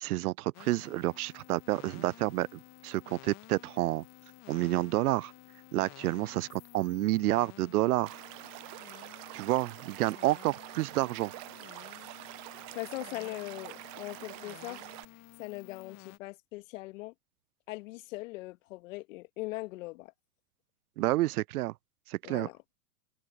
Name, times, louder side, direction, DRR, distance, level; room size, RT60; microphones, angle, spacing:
voice 1, 0.0-4.0 4.5-5.3 5.7-8.2 9.3-11.3 21.0-21.7 22.1-22.5, right 17 dB, 65° right, 0.5 m, -29 dB
sound 1, 0.5-16.2, left 17 dB, 35° left, 1.6 m, -53 dB
Stream / Liquid, 8.1-15.1, right 26 dB, 35° right, 1.0 m, -46 dB
voice 2, 12.7-14.9 15.4-17.1 17.7-20.1 22.2-22.6, left 21 dB, 55° left, 1.7 m, -40 dB
hypercardioid pair, 115°, 48 cm